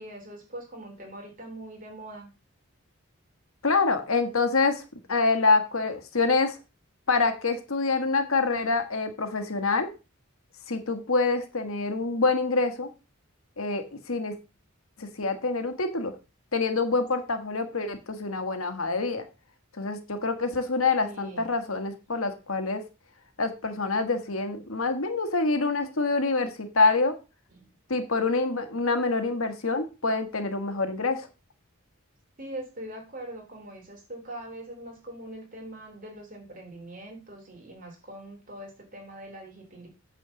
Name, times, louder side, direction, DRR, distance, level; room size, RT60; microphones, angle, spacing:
voice 1, 0.0-2.3 21.0-21.5 27.5-27.6 32.4-39.9, right 1 dB, 40° right, 2 dB, 3.4 m, -42 dB
voice 2, 3.6-4.8 5.1-6.6 7.1-9.9 10.7-12.9 13.6-14.3 15.0-16.1 16.5-19.2 19.8-22.8 23.4-27.1 27.9-31.3, left 3 dB, 80° left, 8 dB, 1.6 m, -26 dB
8.8 x 4.3 x 7.0 m, 0.30 s
head